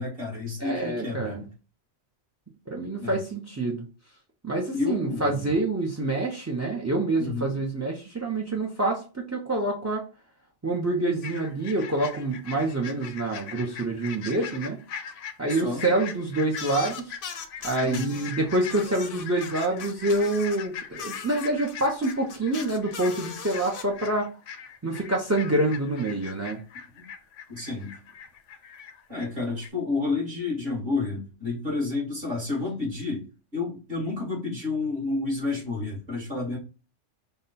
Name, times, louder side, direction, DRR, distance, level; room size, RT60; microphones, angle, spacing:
voice 1, 0.0-1.4 3.0-3.2 4.7-5.5 7.2-7.5 15.5-15.8 17.8-18.2 27.0-27.1 27.5-27.9 29.1-33.3 33.5-36.6, left 3 dB, 50° right, -3 dB, 2.1 m, -30 dB
voice 2, 0.6-1.4 2.7-3.8 4.4-10.1 10.6-14.8 15.4-17.1 17.6-24.3 24.8-26.6, right 2 dB, 20° right, 1 dB, 0.5 m, -27 dB
sound 1, 11.2-29.3 29.6-29.7, left 7 dB, 80° left, 1.0 m, -41 dB
sound 2, 16.5-18.3 18.7-20.6 21.0-23.8, left 6 dB, 55° left, 0.7 m, -39 dB
5.4 x 2.2 x 4.1 m, 0.34 s
omnidirectional pair, 1.2 m